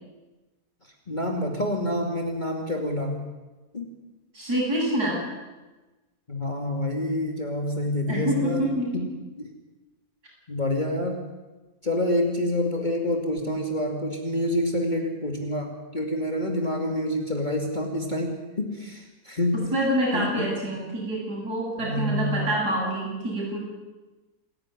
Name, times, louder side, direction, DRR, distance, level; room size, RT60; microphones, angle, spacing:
voice 1, 1.1-3.3 3.7-3.9 6.3-8.7 9.4-9.5 10.5-11.3 11.8-19.6 20.1-20.4 21.8-22.5, left 1 dB, 30° left, 2 dB, 2.5 m, -27 dB
voice 2, 4.3-5.2 8.1-9.0 19.5-23.6, right 1 dB, 80° right, -3 dB, 8.6 m, -26 dB
27.5 x 11.0 x 9.8 m, 1.2 s
omnidirectional pair, 1.7 m